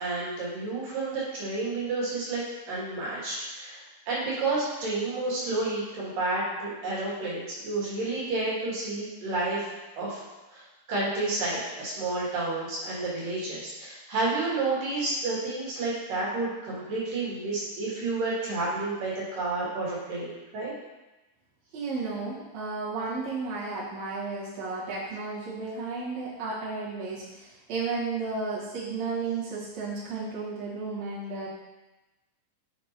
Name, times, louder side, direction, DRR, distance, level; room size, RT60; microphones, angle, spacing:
voice 1, 0.0-9.7 10.0-10.2 10.5-10.6 10.9-20.7, right 2 dB, 75° right, -7 dB, 3.3 m, -30 dB
voice 2, 21.7-31.5, right 4 dB, 55° right, -9 dB, 2.7 m, -33 dB
7.6 x 5.2 x 2.9 m, 1.1 s
omnidirectional pair, 3.9 m